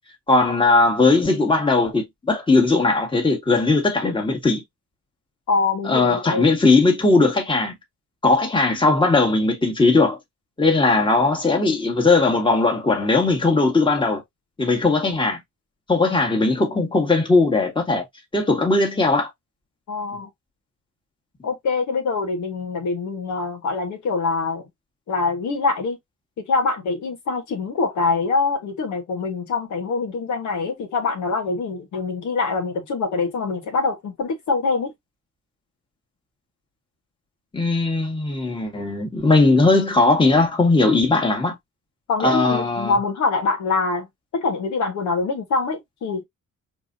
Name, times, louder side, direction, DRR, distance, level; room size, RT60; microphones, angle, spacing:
voice 1, 0.3-4.6 5.8-7.7 8.2-10.2 10.6-14.2 14.6-15.4 15.9-18.0 18.3-19.3 37.5-41.6 42.2-43.0, left 3 dB, 15° left, 1.7 m, -18 dB
voice 2, 5.5-6.5 19.9-20.3 21.4-24.6 25.1-26.0 26.5-34.9 42.1-44.1 44.4-46.2, left 4 dB, 75° left, 1.5 m, -24 dB
4.7 x 3.5 x 2.7 m
cardioid pair, 90°, 30 cm